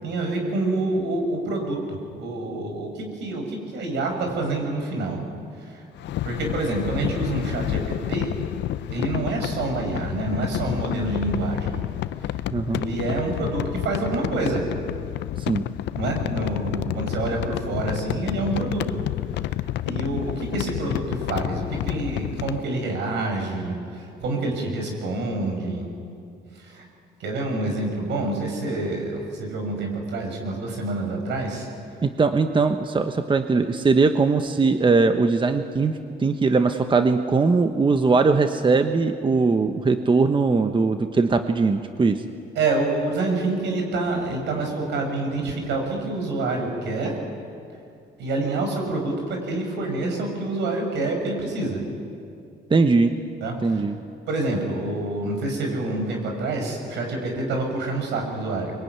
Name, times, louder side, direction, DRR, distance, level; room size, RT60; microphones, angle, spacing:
voice 1, 0.0-5.2 5.6-5.9 6.2-8.3 8.9-11.8 12.2-12.4 12.7-14.6 15.9-19.0 19.3-25.9 26.5-26.8 27.2-31.7 42.5-47.2 48.2-51.8 53.4-53.8 54.3-58.7, right 2 dB, 80° right, 2 dB, 6.7 m, -27 dB
sound 1, 5.9-22.6, left 14 dB, 75° left, 0.7 m, -30 dB
voice 2, 12.5-12.8 15.5-15.6 32.0-35.9 36.2-42.2 52.7-53.2 53.6-53.9, right 4 dB, 25° right, 7 dB, 1.2 m, -20 dB
24.0 x 23.0 x 9.6 m, 2.5 s
cardioid pair, 90°, 18 cm